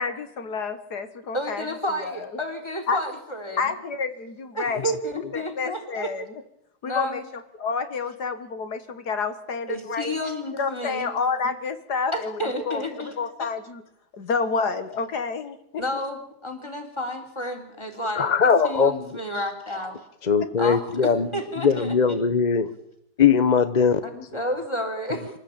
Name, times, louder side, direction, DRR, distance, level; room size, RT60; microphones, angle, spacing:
voice 1, 0.0-2.3 2.9-3.0 3.6-6.4 6.8-7.2 7.6-10.2 10.5-13.8 14.1-15.8, left 5 dB, 70° left, 9 dB, 2.0 m, -29 dB
voice 2, 1.3-3.6 4.6-6.1 6.8-7.2 9.7-11.1 12.1-13.1 13.4-13.5 15.8-20.0 20.6-22.2 24.0-25.4, equal, 15° left, 3 dB, 3.8 m, -31 dB
voice 3, 18.2-19.2 20.2-21.3 21.6-22.7 23.2-24.0, left 6 dB, 35° left, 11 dB, 0.7 m, -20 dB
26.0 x 13.5 x 8.8 m, 0.78 s
omnidirectional pair, 1.8 m